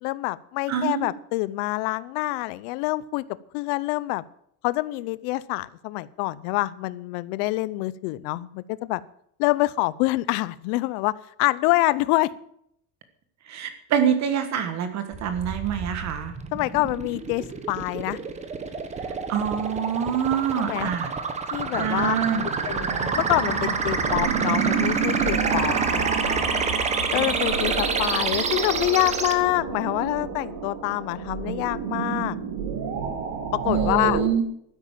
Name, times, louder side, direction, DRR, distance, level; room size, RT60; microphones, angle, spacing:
voice 1, 0.0-3.2 3.5-4.2 4.6-9.0 9.4-12.3 16.5-18.2 20.5-20.9 21.5-22.2 22.4-26.5 27.1-32.4 33.5-34.2, left 20 dB, 70° left, 18 dB, 0.8 m, -26 dB
voice 2, 0.7-1.1 13.5-16.3 19.3-21.1 21.7-22.4 33.7-34.4, right 8 dB, 35° right, 8 dB, 1.5 m, -25 dB
sound 1, 15.1-29.3, right 5 dB, 15° right, 1.1 m, -28 dB
sound 2, 21.7-34.2, right 6 dB, 70° right, 4.7 m, -29 dB
13.0 x 10.5 x 7.5 m, 0.69 s
cardioid pair, 175°, 45 cm